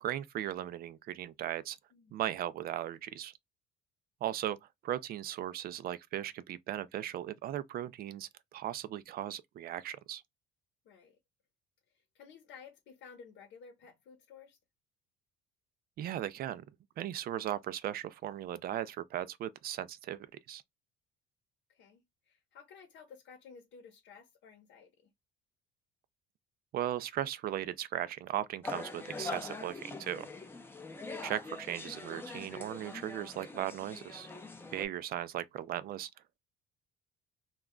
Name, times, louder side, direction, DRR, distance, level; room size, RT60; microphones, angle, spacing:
voice 1, 0.0-1.8 2.1-3.3 4.2-4.6 4.8-10.2 16.0-16.6 17.0-20.6 26.7-30.3 31.2-34.3 34.7-36.1, right 12 dB, 50° right, 0.4 m, -37 dB
voice 2, 10.8-11.2 11.9-14.6 21.7-25.1, left 6 dB, 60° left, 0.9 m, -54 dB
sound 1, 28.6-34.9, left 3 dB, 10° left, 0.5 m, -43 dB
2.3 x 2.2 x 3.6 m
cardioid pair, 110°, 20 cm